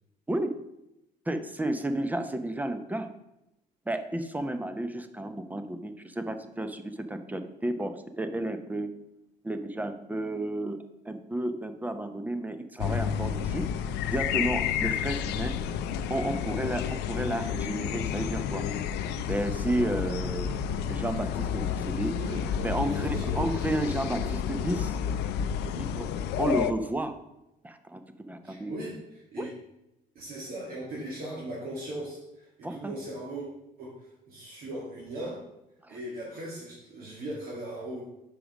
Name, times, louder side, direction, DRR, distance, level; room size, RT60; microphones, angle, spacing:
voice 1, 1.3-3.1 3.9-8.9 9.4-10.8 11.1-13.6 14.1-15.6 16.1-18.6 19.3-20.5 20.9-22.1 22.6-25.2 25.8-26.1 26.4-27.1 27.6-28.7 29.4-29.5 32.6-32.9 35.8-36.0, right 1 dB, 10° right, 8 dB, 0.6 m, -32 dB
sound 1, 12.8-26.7, left 8 dB, 80° left, 0.5 m, -30 dB
voice 2, 22.2-23.8 28.4-29.5 30.2-33.5 33.8-35.4 35.9-38.0, right 1 dB, 60° right, -4 dB, 1.8 m, -39 dB
5.1 x 4.9 x 6.2 m, 0.90 s
cardioid pair, 110°, 17 cm